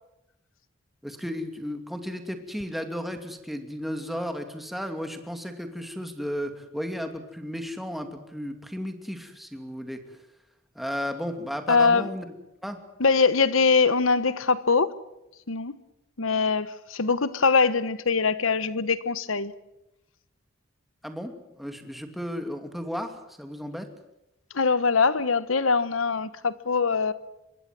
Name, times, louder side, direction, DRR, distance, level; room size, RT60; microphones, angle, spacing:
voice 1, 1.0-10.0 10.7-12.3 12.6-12.8 21.0-23.9, equal, ahead, 2.7 m, -34 dB
voice 2, 11.7-12.1 13.0-14.9 15.5-15.8 16.2-19.5 24.5-27.1, left 4 dB, 75° left, 1.2 m, -22 dB
25.5 x 22.5 x 7.6 m
head